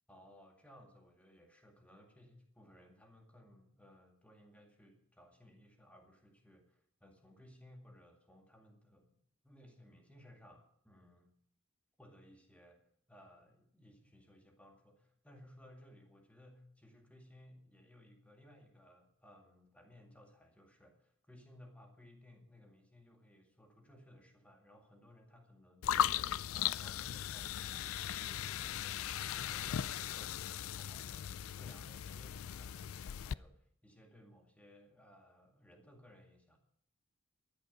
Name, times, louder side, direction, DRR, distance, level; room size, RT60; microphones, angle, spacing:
voice 1, 0.1-9.1 9.4-11.3 12.0-12.8 13.1-26.2 26.5-27.9 28.2-36.6, left 1 dB, 5° left, 2 dB, 2.2 m, -60 dB
sound 1, 25.8-33.3, left 10 dB, 80° left, 0.4 m, -38 dB
15.0 x 10.5 x 5.3 m, 0.68 s
head